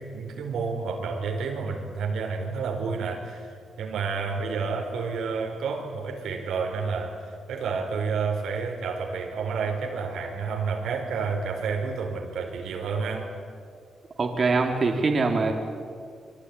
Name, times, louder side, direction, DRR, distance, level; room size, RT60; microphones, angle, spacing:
voice 1, 0.0-7.2 7.5-13.3, right 5 dB, 90° right, 3 dB, 4.5 m, -30 dB
voice 2, 14.2-15.5, right 3 dB, 35° right, 2 dB, 3.5 m, -23 dB
25.0 x 24.0 x 9.9 m, 2.2 s
cardioid pair, 130°, 0 cm